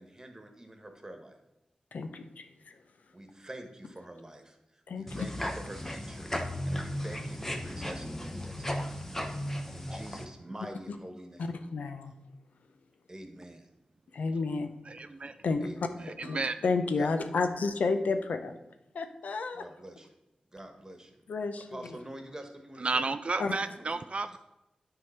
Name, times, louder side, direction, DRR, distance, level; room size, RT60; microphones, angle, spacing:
voice 1, 0.0-1.4 3.1-9.0 9.7-11.6 13.1-13.7 15.6-16.1 17.0-17.1 19.5-20.1 20.5-21.1 21.6-23.0 23.7-24.4, right 1 dB, 25° right, 5 dB, 1.4 m, -46 dB
voice 2, 1.9-2.5 4.9-5.3 11.4-12.1 14.1-14.7 15.4-15.7 16.2-16.4 16.6-18.5 18.9-19.6 21.3-21.7 23.4-23.6, left 4 dB, 80° left, 7 dB, 0.7 m, -31 dB
sound 1, 5.1-10.2, equal, 15° left, 1.0 m, -35 dB
voice 3, 14.8-15.4 16.0-16.5 22.8-24.4, right 3 dB, 50° right, 11 dB, 0.4 m, -32 dB
9.5 x 3.8 x 5.7 m, 0.94 s
cardioid pair, 55°, 3 cm